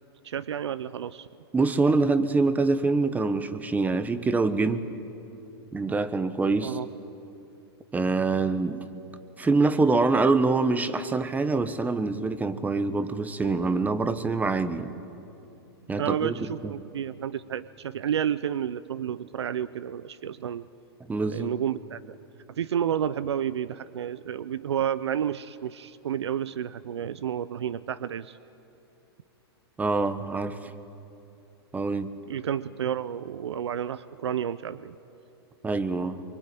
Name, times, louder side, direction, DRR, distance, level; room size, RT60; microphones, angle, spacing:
voice 1, 0.2-1.3 6.6-6.9 16.0-20.7 21.3-22.0 22.6-28.4 32.3-34.9, right 9 dB, 85° right, 16 dB, 0.6 m, -30 dB
voice 2, 1.5-4.9 5.7-6.8 7.9-8.8 9.4-14.9 15.9-16.3 16.6-16.7 21.1-21.5 29.8-30.7 31.7-32.1 35.6-36.2, right 3 dB, 10° right, 12 dB, 1.2 m, -25 dB
24.0 x 24.0 x 9.1 m, 2.9 s
hypercardioid pair, 120°, 14 cm